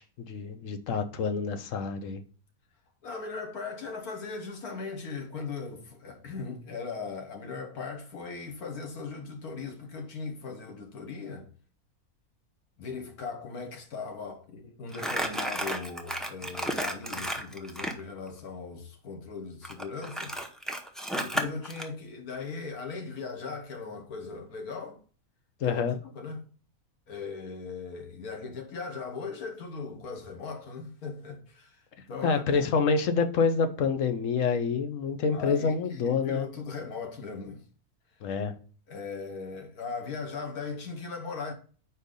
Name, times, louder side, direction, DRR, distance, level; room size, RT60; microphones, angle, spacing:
voice 1, 0.0-2.2 25.6-26.0 32.2-36.5 38.2-38.5, left 5 dB, 65° left, 1.1 m, -27 dB
voice 2, 3.0-11.5 12.8-20.4 21.1-25.0 25.6-25.8 26.1-26.5 27.1-32.7 35.3-37.6 38.9-41.5, left 4 dB, 85° left, 1.8 m, -38 dB
Crumpling crinkling, 14.9-18.0 19.6-21.9, right 1 dB, ahead, 0.4 m, -32 dB
4.8 x 4.5 x 5.2 m
omnidirectional pair, 1.5 m